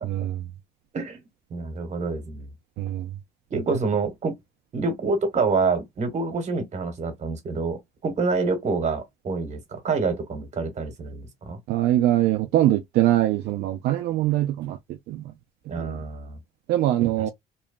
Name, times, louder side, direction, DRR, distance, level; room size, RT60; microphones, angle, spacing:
voice 1, 0.0-0.4 2.8-3.2 11.7-15.2 15.8-16.0 16.7-17.3, right 14 dB, 75° right, 0.4 m, -23 dB
voice 2, 1.5-2.5 3.5-4.4 4.7-11.6 15.7-16.4 17.2-17.3, right 4 dB, 40° right, 1.2 m, -27 dB
3.0 x 2.2 x 2.3 m
cardioid pair, 110°, 17 cm